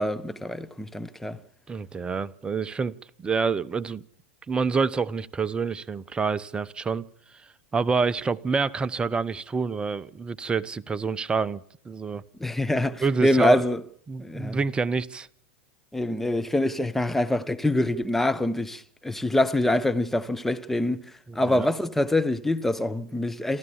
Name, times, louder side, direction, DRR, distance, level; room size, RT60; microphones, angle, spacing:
voice 1, 0.0-1.4 12.4-13.8 14.2-14.6 15.9-21.0 21.3-23.6, left 1 dB, 5° left, 1.1 m, -25 dB
voice 2, 1.7-4.0 4.5-7.1 7.7-12.2 13.0-13.6 14.1-15.3 21.3-21.7, right 5 dB, 15° right, 0.8 m, -27 dB
27.5 x 14.0 x 7.2 m
figure-of-eight pair, 90°, 6 cm